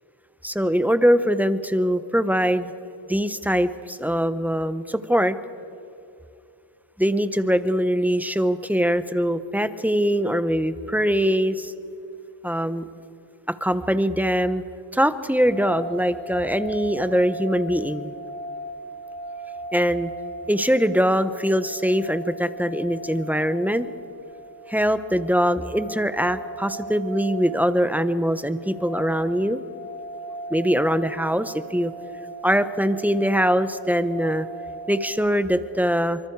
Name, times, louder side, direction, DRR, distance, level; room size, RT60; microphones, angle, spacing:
voice 1, 0.4-2.7 3.1-5.4 7.0-11.7 12.4-12.8 13.6-14.6 14.9-18.1 19.7-20.1 20.5-23.9 24.7-29.6 30.5-31.9 32.4-34.5 34.9-36.2, equal, 5° right, 12 dB, 1.0 m, -22 dB
sound 1, 15.5-35.1, right 2 dB, 70° right, 2.1 m, -38 dB
25.0 x 24.0 x 4.8 m, 2.7 s
wide cardioid pair, 55°, 43 cm